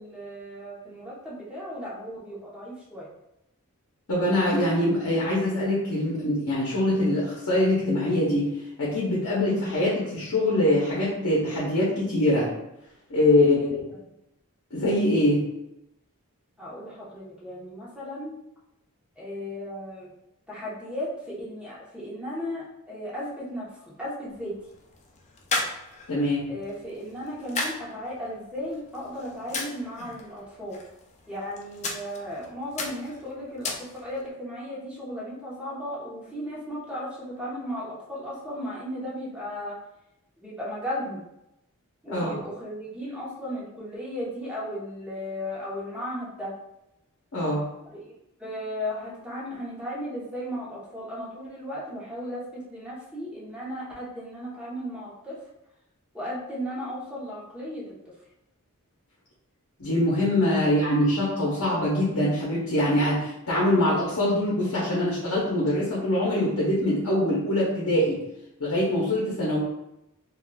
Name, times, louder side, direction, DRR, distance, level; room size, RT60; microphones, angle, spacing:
voice 1, 0.0-3.1 13.4-14.0 16.6-18.3 19.2-20.1 20.5-24.6 26.5-30.8 31.3-39.7 40.4-41.2 42.0-46.5 47.8-55.4 56.1-57.8, equal, 5° right, -7 dB, 0.9 m, -35 dB
voice 2, 4.1-12.5 13.1-13.6 14.7-15.4 26.1-26.5 42.1-42.3 47.3-47.6 59.8-68.2 68.6-69.6, left 1 dB, 70° left, -6 dB, 0.8 m, -23 dB
sound 1, 24.3-34.3, left 3 dB, 30° left, 0.4 m, -37 dB
3.7 x 2.4 x 2.2 m, 0.87 s
head